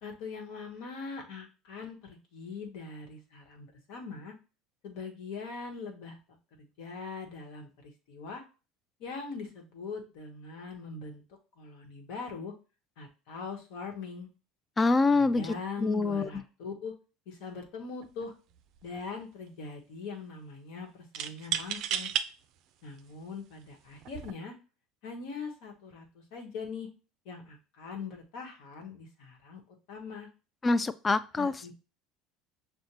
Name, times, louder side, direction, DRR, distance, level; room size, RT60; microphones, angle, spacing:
voice 1, 0.0-4.3 4.8-6.2 6.6-8.4 9.0-11.2 11.6-12.5 13.0-14.3 15.2-16.9 17.3-18.3 18.8-22.1 22.8-24.5 25.0-26.9 27.2-29.6 29.9-30.3 31.4-31.7, left 4 dB, 70° left, 1.1 m, -41 dB
voice 2, 14.8-15.5 15.8-16.3 30.6-31.7, left 3 dB, 25° left, 0.3 m, -25 dB
sound 1, 18.0-18.2 18.6-19.2 21.1-22.3 23.0-23.1 24.0-24.3, right 10 dB, 60° right, 0.3 m, -33 dB
6.4 x 2.1 x 2.9 m
hypercardioid pair, 75°, 0 cm